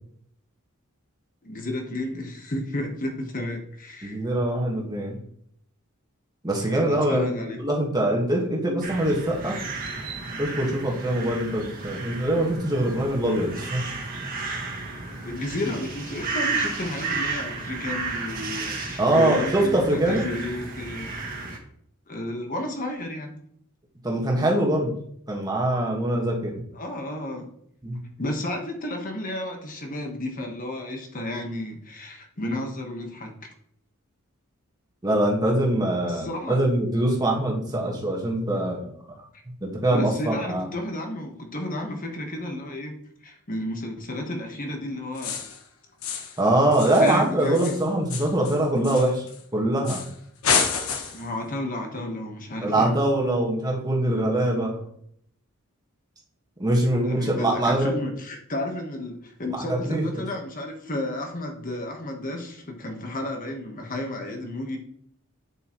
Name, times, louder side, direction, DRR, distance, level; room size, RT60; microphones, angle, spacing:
voice 1, 1.4-4.2 6.6-7.6 15.2-21.1 22.1-23.4 26.7-27.5 28.2-33.3 36.0-36.6 39.9-42.9 43.2-45.5 46.0-46.2 46.9-47.8 51.1-53.1 57.0-64.8, left 1 dB, 40° left, 3 dB, 1.3 m, -32 dB
voice 2, 4.0-5.2 6.4-9.6 10.4-13.8 14.4-14.5 19.0-20.3 24.0-24.9 25.3-26.5 27.8-28.0 35.0-38.9 39.6-40.6 46.4-49.3 49.5-50.0 52.6-54.8 56.6-58.0 59.7-60.2, right 1 dB, 20° right, -1 dB, 1.6 m, -23 dB
sound 1, 8.8-21.6, right 4 dB, 40° right, 1.7 m, -33 dB
sound 2, 45.2-45.6 46.0-46.4 46.7-49.4 49.9-50.1 50.4-51.3, left 5 dB, 70° left, 1.3 m, -28 dB
8.6 x 7.8 x 3.1 m, 0.67 s
head